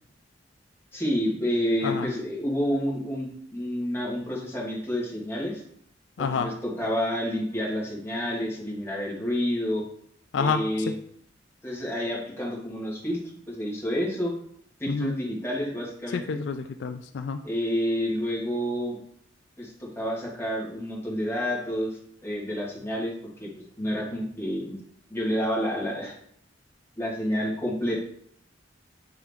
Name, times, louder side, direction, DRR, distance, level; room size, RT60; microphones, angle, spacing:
voice 1, 0.9-5.6 6.2-9.9 10.4-10.9 11.6-14.3 14.8-16.2 17.4-19.0 19.6-23.5 23.8-24.8 25.1-26.1 27.0-28.0, equal, 15° left, -3 dB, 1.5 m, -29 dB
voice 2, 6.2-6.5 10.3-10.6 14.9-15.1 16.1-17.4, left 5 dB, 65° left, 8 dB, 0.3 m, -28 dB
7.8 x 3.6 x 3.5 m, 0.66 s
head